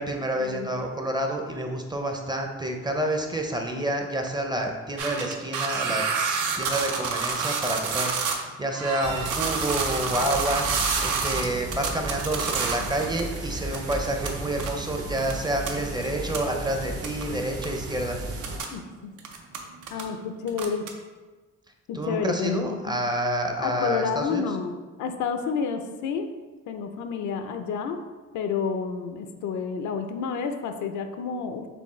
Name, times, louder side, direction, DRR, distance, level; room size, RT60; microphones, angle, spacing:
voice 1, 0.0-6.0 6.5-18.2 21.9-24.4, right 1 dB, 15° right, 3 dB, 0.5 m, -29 dB
sound 1, 5.0-8.4 8.7-13.4 13.7-14.3 14.6-14.7 15.2-15.3 15.7-15.8 16.0-16.1 16.3-16.4 17.0-17.2 17.6-17.7 18.3-18.7 19.2-20.0 20.5-20.9, right 5 dB, 85° right, 0.6 m, -28 dB
sound 2, 9.0-18.6, right 1 dB, 50° right, 0.7 m, -35 dB
voice 2, 18.7-19.1 19.9-20.8 21.9-23.0 23.6-26.3 26.7-28.0 28.3-31.7, left 6 dB, 75° left, 7 dB, 0.5 m, -30 dB
4.4 x 3.2 x 3.1 m, 1.3 s
cardioid pair, 90°, 30 cm